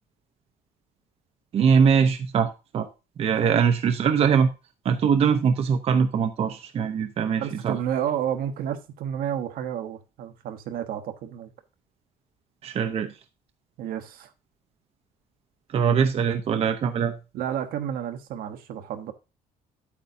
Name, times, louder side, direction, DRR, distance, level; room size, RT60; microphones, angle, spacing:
voice 1, 1.5-2.9 3.2-4.5 4.8-7.8 12.6-13.1 15.7-17.1, right 6 dB, 40° right, 0.7 m, -22 dB
voice 2, 7.4-11.5 13.8-14.3 17.3-19.1, right 9 dB, 70° right, 1.1 m, -31 dB
8.5 x 8.2 x 2.7 m
cardioid pair, 135°, 16 cm